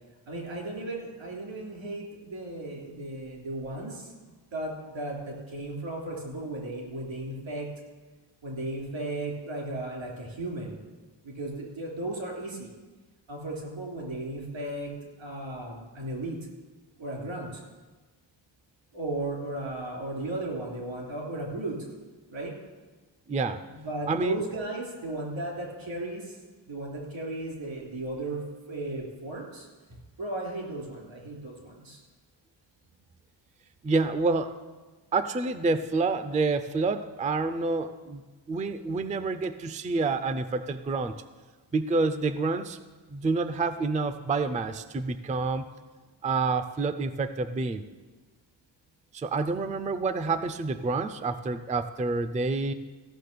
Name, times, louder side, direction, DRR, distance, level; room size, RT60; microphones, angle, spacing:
voice 1, 0.3-4.1 4.5-7.7 8.4-10.8 11.2-12.7 13.3-14.9 15.2-16.4 17.0-17.6 18.9-21.9 22.3-22.5 23.7-26.4 26.7-29.7 30.2-32.0, right 2 dB, 90° right, -1 dB, 3.3 m, -35 dB
voice 2, 23.3-23.6 24.1-24.4 33.8-34.5 35.1-38.2 38.5-41.2 41.7-42.8 43.1-45.7 46.2-47.8 49.1-52.7, right 3 dB, 20° right, 11 dB, 0.3 m, -28 dB
15.5 x 6.0 x 6.7 m, 1.3 s
wide cardioid pair, 165°, 45 cm